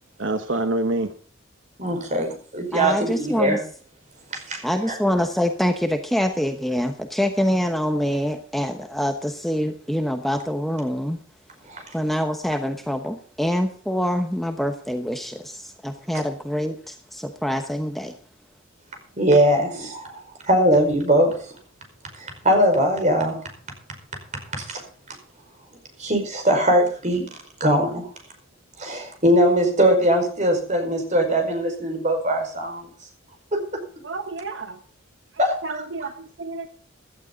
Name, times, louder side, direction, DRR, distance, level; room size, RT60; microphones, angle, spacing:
voice 1, 0.2-1.1 34.0-34.8 35.6-36.7, right 2 dB, 65° right, 8 dB, 1.2 m, -28 dB
voice 2, 1.8-3.6 4.5-4.6 4.9-5.0 11.7-11.8 19.2-21.5 22.2-23.4 24.5-24.8 26.0-27.2 27.6-28.1 28.8-32.9 33.5-33.8 35.4-35.5 36.0-36.1, equal, 35° right, 4 dB, 4.9 m, -21 dB
voice 3, 2.7-3.6 4.6-11.2 11.9-18.1, equal, ahead, 6 dB, 1.0 m, -25 dB
16.5 x 12.0 x 3.9 m, 0.44 s
head